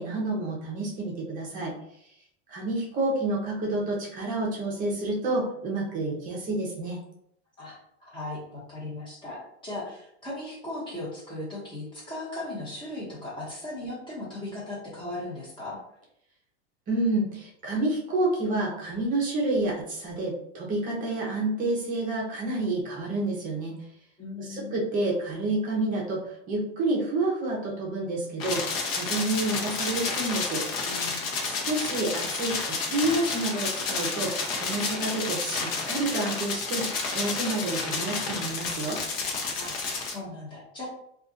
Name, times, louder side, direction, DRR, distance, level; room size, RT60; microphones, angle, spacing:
voice 1, 0.0-1.7 2.5-7.0 16.9-23.7 24.4-30.6 31.4-39.0, right 2 dB, 25° right, -2 dB, 0.7 m, -29 dB
voice 2, 7.6-15.8 24.2-24.7 30.8-31.3 39.5-40.9, left 2 dB, 15° left, -6 dB, 1.1 m, -38 dB
sound 1, 28.4-40.1, left 4 dB, 55° left, 0.8 m, -30 dB
2.4 x 2.4 x 3.8 m, 0.73 s
supercardioid pair, 160°, 35 cm